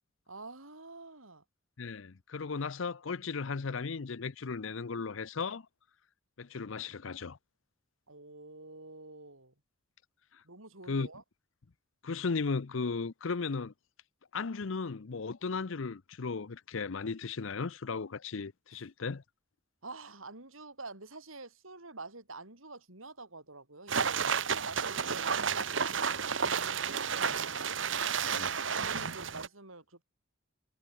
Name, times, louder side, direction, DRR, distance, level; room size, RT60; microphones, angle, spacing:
voice 1, 0.3-1.4 8.1-9.5 10.4-11.2 19.8-27.7 28.8-30.0, right 3 dB, 85° right, 7.3 m, -47 dB
voice 2, 1.8-5.7 6.4-7.4 10.3-10.4 10.9-11.1 12.0-13.7 14.3-19.2 28.3-28.5 29.0-29.1, left 4 dB, 70° left, 0.7 m, -36 dB
sound 1, 23.9-29.5, right 6 dB, 65° right, 1.4 m, -31 dB
head